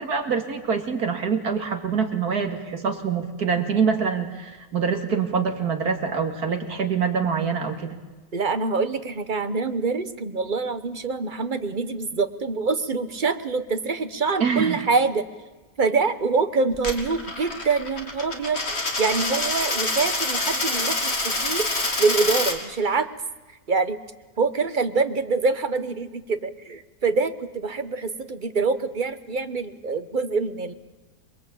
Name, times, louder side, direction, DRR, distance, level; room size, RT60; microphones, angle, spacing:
voice 1, 0.0-7.9 14.4-14.8, right 6 dB, 75° right, 6 dB, 2.7 m, -25 dB
voice 2, 8.3-15.3 15.8-21.7 22.0-23.1 23.7-24.0 24.4-30.7, right 4 dB, 35° right, 11 dB, 1.2 m, -25 dB
Coin (dropping), 16.7-22.6, left 2 dB, 40° left, 3.0 m, -26 dB
27.5 x 21.5 x 8.6 m, 1.2 s
omnidirectional pair, 1.6 m